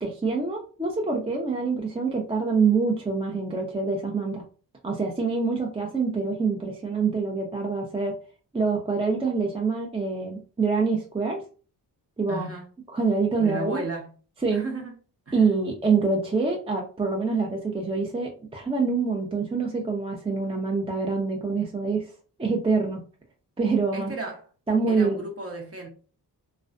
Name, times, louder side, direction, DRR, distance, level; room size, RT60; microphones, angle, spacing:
voice 1, 0.0-4.4 4.8-8.1 8.5-11.4 12.2-12.4 12.9-13.8 14.4-14.6 15.3-22.1 22.4-23.0 23.6-24.1 24.7-25.2, right 4 dB, 15° right, 0.5 m, -25 dB
voice 2, 12.3-12.7 13.4-14.1 14.5-15.0 15.3-15.5 23.9-24.5 24.9-25.9, right 3 dB, 35° right, 0.9 m, -34 dB
2.3 x 2.2 x 2.4 m
cardioid pair, 55°, 41 cm